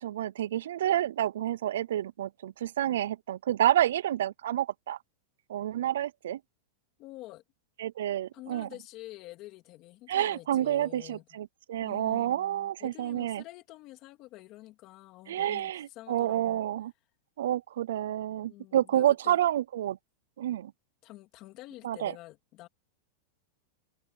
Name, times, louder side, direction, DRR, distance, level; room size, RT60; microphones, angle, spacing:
voice 1, 0.0-5.0 5.5-6.4 7.8-8.7 10.1-13.4 15.3-16.9 17.4-20.0 20.4-20.7 21.8-22.1, right 12 dB, 80° right, 0.4 m, -29 dB
voice 2, 7.0-7.4 8.3-11.2 11.8-16.6 18.4-19.4 21.0-22.7, left 17 dB, 40° left, 2.8 m, -48 dB
supercardioid pair, 150°, 0 cm